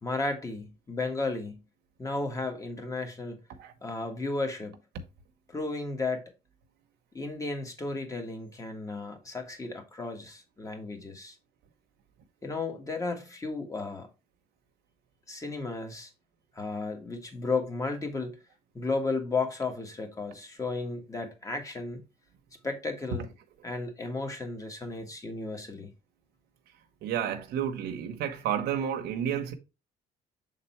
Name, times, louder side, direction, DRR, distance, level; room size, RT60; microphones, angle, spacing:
voice 1, 0.0-1.6 2.0-3.4 3.8-4.8 5.5-6.2 7.1-11.3 12.4-14.1 15.3-16.1 16.5-18.4 18.7-22.0 22.6-23.3 23.6-25.9, left 3 dB, 20° left, 1.7 m, -34 dB
voice 2, 27.0-29.5, right 9 dB, 80° right, 1.0 m, -31 dB
6.8 x 3.9 x 4.4 m
cardioid pair, 110°, 17 cm